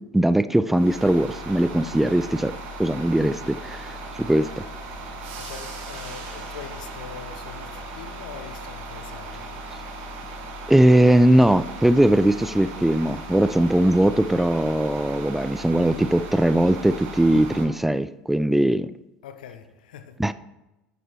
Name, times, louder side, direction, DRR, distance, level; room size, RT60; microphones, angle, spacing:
voice 1, 0.0-4.7 10.7-18.9 20.2-20.3, right 1 dB, 5° right, 0.3 m, -20 dB
sound 1, 0.6-17.7, right 2 dB, 55° right, 2.5 m, -37 dB
voice 2, 5.4-9.5 19.2-20.2, left 8 dB, 70° left, 0.9 m, -42 dB
11.0 x 9.0 x 3.1 m
figure-of-eight pair, 75°, 5 cm